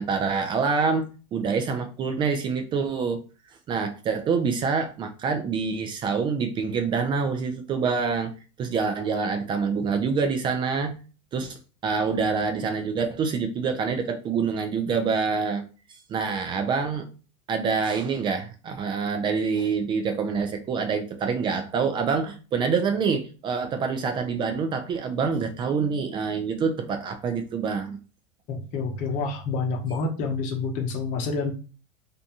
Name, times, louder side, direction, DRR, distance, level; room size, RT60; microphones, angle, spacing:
voice 1, 0.0-3.2 3.7-8.3 8.6-10.9 11.3-11.6 11.8-15.6 16.1-17.1 17.5-28.0, right 5 dB, 30° right, 6 dB, 0.4 m, -26 dB
voice 2, 28.5-31.5, left 4 dB, 50° left, 3 dB, 0.8 m, -28 dB
2.6 x 2.2 x 2.7 m, 0.34 s
supercardioid pair, 120°, 16 cm